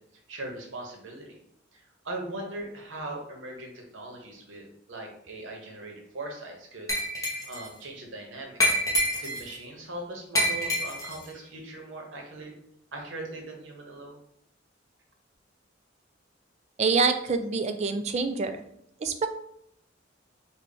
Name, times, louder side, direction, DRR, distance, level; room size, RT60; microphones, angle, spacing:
voice 1, 0.3-1.4 1.7-8.6 9.2-12.5 12.9-14.2, right 2 dB, 75° right, 1 dB, 0.9 m, -40 dB
Glass, 6.9-7.7 8.6-9.5 10.3-11.2, equal, 15° left, 0.8 m, -27 dB
voice 2, 16.8-18.6 19.0-19.3, right 4 dB, 35° right, 7 dB, 0.3 m, -26 dB
3.4 x 2.3 x 3.8 m, 0.74 s
head